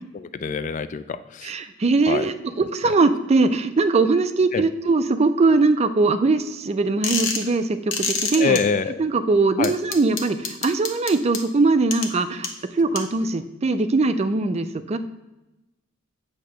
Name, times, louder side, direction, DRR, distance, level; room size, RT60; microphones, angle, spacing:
voice 1, 0.1-1.5 2.1-2.3 4.5-4.6 8.4-9.0 9.6-9.7, left 5 dB, 40° left, 12 dB, 0.3 m, -25 dB
voice 2, 1.4-8.6 9.0-12.5 12.7-15.0, right 3 dB, 30° right, 10 dB, 0.4 m, -21 dB
sound 1, 7.0-7.5 7.9-8.6 9.6-11.4 11.9-12.1 12.4-12.5 13.0-13.1, left 5 dB, 70° left, 0.9 m, -25 dB
8.5 x 2.9 x 6.3 m, 0.97 s
head